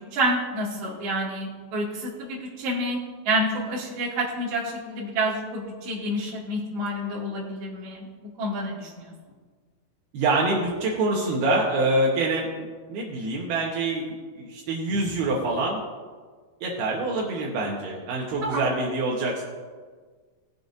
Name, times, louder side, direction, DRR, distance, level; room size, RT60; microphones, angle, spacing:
voice 1, 0.0-3.0 3.2-9.1 18.4-18.6, right 1 dB, 45° right, -6 dB, 2.8 m, -28 dB
voice 2, 10.1-15.8 16.6-19.4, right 2 dB, 75° right, -2 dB, 2.9 m, -26 dB
20.0 x 6.8 x 2.6 m, 1.5 s
omnidirectional pair, 4.8 m